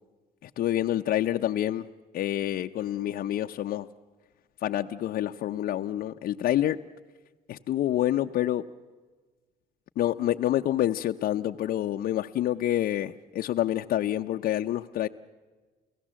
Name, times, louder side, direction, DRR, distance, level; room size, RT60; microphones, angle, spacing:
voice 1, 0.4-1.9 2.1-3.9 4.6-6.8 7.5-8.7 10.0-15.1, left 12 dB, 60° left, 4 dB, 0.6 m, -27 dB
29.5 x 17.0 x 7.5 m, 1.3 s
cardioid pair, 110°, 17 cm